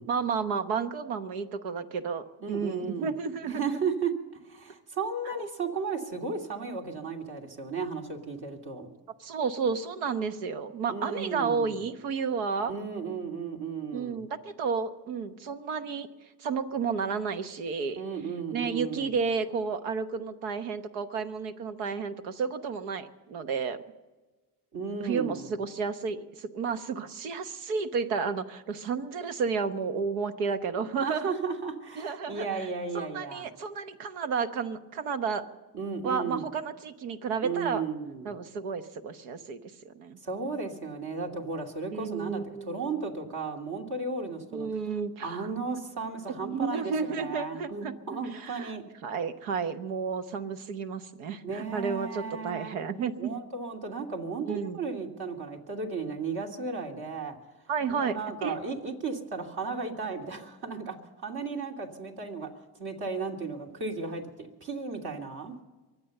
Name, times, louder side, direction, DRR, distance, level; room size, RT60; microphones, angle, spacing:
voice 1, 0.1-3.8 5.3-5.5 9.2-12.7 13.9-16.1 16.4-18.0 18.5-23.8 25.0-31.3 32.0-32.7 32.9-35.4 36.0-37.8 38.2-40.2 41.9-43.0 44.5-45.5 46.4-48.8 49.0-53.3 54.4-54.8 57.7-58.6, right 5 dB, 85° right, 10 dB, 1.1 m, -32 dB
voice 2, 2.4-3.1 3.4-4.1 4.4-8.9 10.9-11.8 12.7-14.2 18.0-19.1 24.7-25.5 31.0-33.5 35.7-36.4 37.4-38.3 40.2-44.7 45.2-48.8 51.4-52.8 53.2-57.4 57.9-61.0 61.2-62.5 62.8-65.6, right 4 dB, 55° right, 1 dB, 2.9 m, -34 dB
23.5 x 8.6 x 6.7 m, 1.2 s
supercardioid pair, 70°, 46 cm